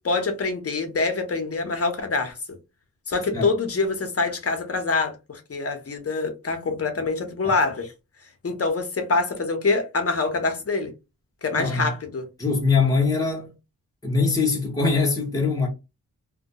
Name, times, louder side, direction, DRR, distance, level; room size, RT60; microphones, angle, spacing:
voice 1, 0.0-2.4 3.1-7.9 8.4-10.9 11.4-12.3, left 3 dB, 40° left, 0.7 m, -25 dB
voice 2, 11.5-11.9 12.4-13.5 14.0-15.7, left 4 dB, 10° left, 0.8 m, -22 dB
2.2 x 2.1 x 2.7 m
wide cardioid pair, 95°, 36 cm